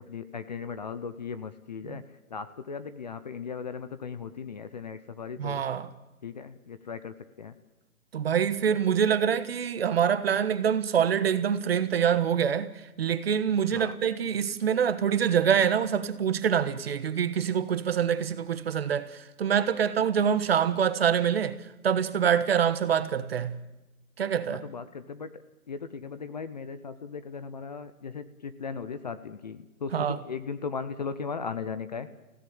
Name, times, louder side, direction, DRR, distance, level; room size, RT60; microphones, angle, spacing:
voice 1, 0.0-2.0 2.3-5.6 6.2-7.5 13.7-13.9 24.7-25.3 25.7-32.1, left 5 dB, 30° left, 0.7 m, -37 dB
voice 2, 5.4-5.9 8.1-21.6 21.8-23.6 24.2-24.6 29.9-30.2, right 8 dB, 45° right, 1.3 m, -25 dB
26.0 x 16.5 x 9.3 m
hypercardioid pair, 160°, 44 cm